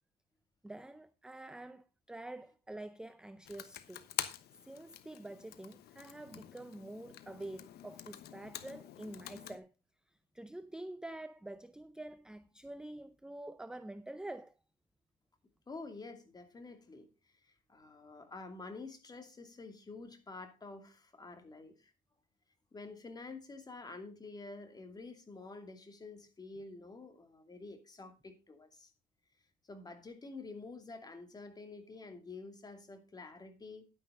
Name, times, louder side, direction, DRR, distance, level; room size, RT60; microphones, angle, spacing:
voice 1, 0.6-4.1 4.6-9.7 10.1-14.6, right 1 dB, 5° right, 0.5 m, -47 dB
Computer keyboard, 3.4-9.6, left 12 dB, 70° left, 1.2 m, -46 dB
voice 2, 15.7-21.9 22.7-28.9 29.7-33.9, left 3 dB, 25° left, 2.6 m, -49 dB
11.0 x 9.9 x 3.8 m
cardioid pair, 110°, 17 cm